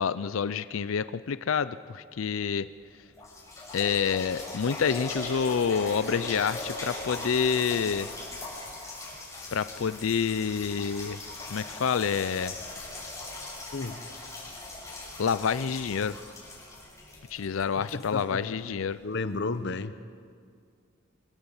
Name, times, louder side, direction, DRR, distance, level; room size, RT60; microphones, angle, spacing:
voice 1, 0.0-2.7 3.7-8.1 9.5-11.2 11.5-12.6 15.2-16.2 17.3-19.0, left 6 dB, 90° left, 15 dB, 0.5 m, -28 dB
sound 1, 2.7-2.8 3.2-18.9 19.5-19.6, left 2 dB, 15° left, 5.4 m, -40 dB
voice 2, 17.9-18.4 19.0-19.9, left 3 dB, 60° left, 12 dB, 0.8 m, -32 dB
24.0 x 17.0 x 7.2 m, 2.1 s
head